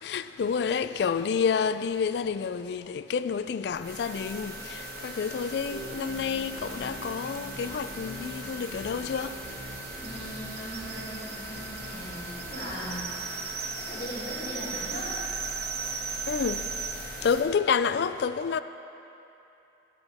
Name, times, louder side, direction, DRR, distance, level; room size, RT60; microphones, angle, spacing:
voice 1, 0.0-9.5 16.3-16.8 17.2-18.6, left 6 dB, 70° left, 0.3 m, -29 dB
sound 1, 3.7-17.4, right 1 dB, 55° right, 1.5 m, -40 dB
sound 2, 5.7-13.0, right 1 dB, 5° right, 1.1 m, -45 dB
sound 3, 7.2-7.3 7.6-7.7 7.9-16.9, right 6 dB, 35° right, 0.5 m, -38 dB
voice 2, 10.0-13.1 13.7-15.2, equal, 50° left, 2.6 m, -39 dB
12.0 x 9.3 x 3.5 m
head